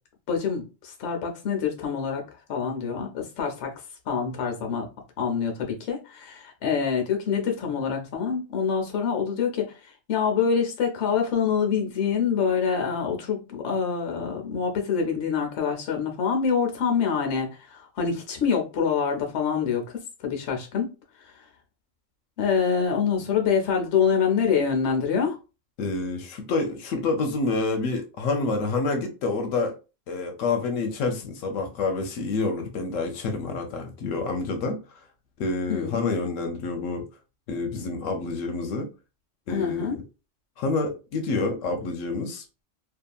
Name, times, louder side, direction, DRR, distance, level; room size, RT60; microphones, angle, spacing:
voice 1, 0.3-2.2 2.5-3.7 4.1-4.9 5.2-9.7 10.1-19.8 20.2-20.9 21.2-21.3 22.4-25.4 35.7-36.1 36.4-36.5 39.5-40.0, left 6 dB, 65° left, 1.0 m, -26 dB
voice 2, 25.8-29.7 30.1-34.8 35.4-37.0 37.5-38.9 39.5-40.0 40.6-42.4, left 3 dB, 85° left, 1.0 m, -28 dB
2.7 x 2.4 x 2.2 m
omnidirectional pair, 1.3 m